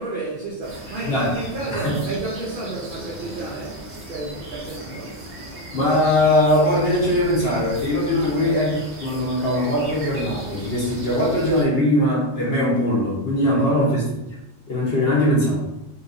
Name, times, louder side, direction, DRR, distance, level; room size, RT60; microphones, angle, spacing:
voice 1, 0.0-5.2 8.1-8.8 13.5-13.7, right 2 dB, 60° right, 0.5 m, -32 dB
sound 1, 0.6-11.6, right 1 dB, 40° right, 0.8 m, -37 dB
voice 2, 1.0-1.4 1.7-2.0 5.7-14.1 14.7-15.6, left 1 dB, 50° left, 1.0 m, -20 dB
2.9 x 2.8 x 2.5 m
omnidirectional pair, 1.4 m